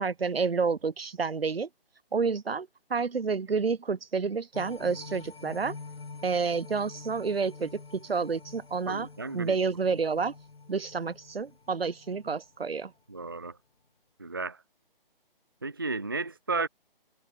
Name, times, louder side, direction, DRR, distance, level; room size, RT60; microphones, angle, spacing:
voice 1, 0.0-1.7 2.1-5.8 6.2-9.1 9.3-10.3 10.7-12.9, right 5 dB, 80° right, 2.0 m, -29 dB
sound 1, 4.5-12.9 13.3-13.4, left 4 dB, 85° left, 6.2 m, -47 dB
voice 2, 8.9-9.6 13.1-13.6 14.2-14.6 15.6-16.7, right 3 dB, 25° right, 0.7 m, -33 dB
hypercardioid pair, 180°, 29 cm